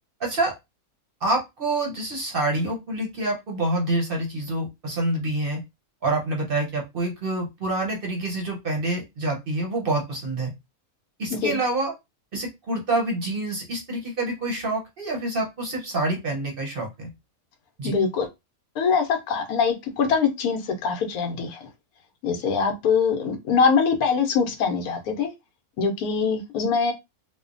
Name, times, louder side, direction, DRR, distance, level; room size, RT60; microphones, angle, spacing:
voice 1, 0.2-0.5 1.2-5.6 6.0-10.5 11.2-11.9 12.3-17.1 17.8-17.9, right 2 dB, 50° right, 0.8 m, -27 dB
voice 2, 17.8-18.3 18.8-21.6 22.2-25.3 25.8-26.9, left 5 dB, 80° left, 1.1 m, -23 dB
3.1 x 2.1 x 2.5 m
omnidirectional pair, 1.5 m